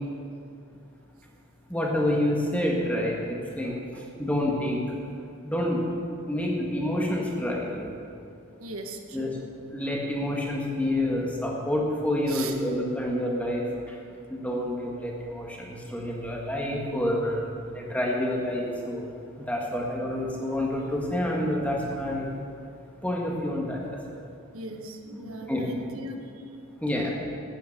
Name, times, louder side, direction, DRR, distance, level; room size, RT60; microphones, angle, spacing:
voice 1, 1.7-3.7 4.2-4.8 5.4-5.8 6.2-7.9 9.1-9.4 9.7-13.9 14.3-17.4 17.7-19.1 19.4-22.3 23.0-24.2 25.1-25.7 26.1-26.2 26.8-27.1, left 1 dB, 5° left, -2 dB, 1.7 m, -28 dB
voice 2, 3.7-4.0 8.6-9.4 12.3-12.5 24.5-26.4, right 2 dB, 85° right, 3 dB, 1.3 m, -39 dB
13.0 x 9.3 x 6.7 m, 2.4 s
head